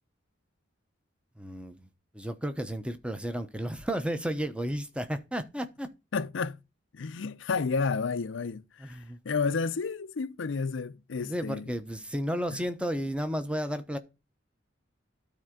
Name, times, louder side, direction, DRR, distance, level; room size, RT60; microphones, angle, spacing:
voice 1, 1.4-1.9 2.1-5.9 8.8-9.2 11.1-14.0, equal, 5° right, 0.8 m, -33 dB
voice 2, 6.1-6.6 6.9-11.7 12.5-12.6, left 4 dB, 75° left, 0.5 m, -31 dB
13.0 x 4.4 x 3.7 m
head